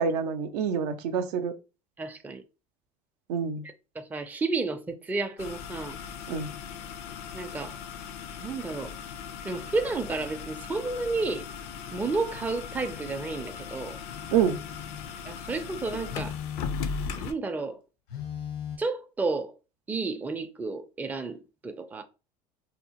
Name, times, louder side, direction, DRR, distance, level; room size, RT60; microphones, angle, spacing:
voice 1, 0.0-1.5 3.3-3.6 6.3-6.5 14.3-14.6, right 7 dB, 80° right, 0.5 m, -26 dB
voice 2, 2.0-2.4 4.0-6.0 7.3-7.8 8.4-8.9 9.4-11.4 11.9-14.0 15.3-16.4 17.2-17.8 18.8-19.5 19.9-22.0, right 3 dB, 10° right, 0.4 m, -31 dB
sound 1, 5.4-17.3, left 6 dB, 60° left, 0.4 m, -39 dB
Telephone, 12.9-13.2 14.1-15.2 16.1-17.3 18.1-18.8, left 9 dB, 85° left, 0.9 m, -38 dB
2.8 x 2.0 x 2.8 m
hypercardioid pair, 90°, 19 cm